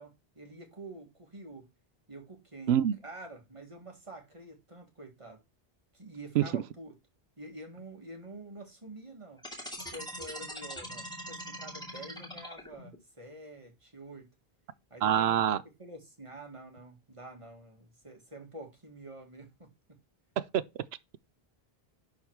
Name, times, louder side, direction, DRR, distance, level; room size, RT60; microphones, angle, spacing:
voice 1, 0.0-1.7 2.1-2.8 3.0-5.4 5.9-6.9 7.4-9.4 9.9-14.3 14.9-20.0, right 1 dB, 30° right, 1.9 m, -47 dB
sound 1, 9.4-12.9, equal, 5° left, 2.4 m, -42 dB
voice 2, 15.0-15.6 20.4-20.6, right 10 dB, 90° right, 0.9 m, -25 dB
11.0 x 3.9 x 4.6 m
omnidirectional pair, 1.0 m